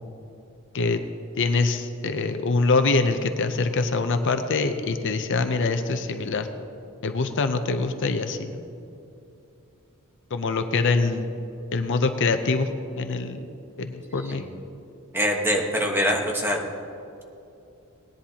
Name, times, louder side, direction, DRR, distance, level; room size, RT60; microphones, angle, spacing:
voice 1, 1.4-6.5 7.0-8.6 10.3-11.3 11.7-12.7 13.0-13.5 13.8-14.4, left 3 dB, 60° left, 8 dB, 0.6 m, -24 dB
voice 2, 15.1-16.6, equal, 10° right, 0 dB, 1.3 m, -24 dB
18.5 x 10.5 x 2.9 m, 2.7 s
head